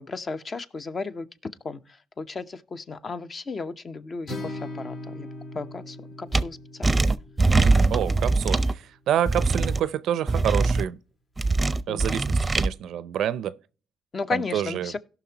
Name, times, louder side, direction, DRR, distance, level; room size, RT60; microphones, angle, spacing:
voice 1, 0.0-5.3 5.5-7.1 7.9-8.2 11.9-12.2 14.1-15.0, left 4 dB, 40° left, 0.8 m, -35 dB
Acoustic guitar, 4.3-8.5, left 1 dB, 65° left, 3.8 m, -39 dB
sound 1, 6.3-6.4 6.8-8.7 9.3-9.8 10.3-10.8 11.4-12.7, right 3 dB, 20° right, 0.6 m, -22 dB
voice 2, 7.6-11.0 11.9-13.5 14.3-14.9, right 10 dB, 75° right, 0.5 m, -28 dB
17.0 x 5.9 x 2.9 m
cardioid pair, 90°, 0 cm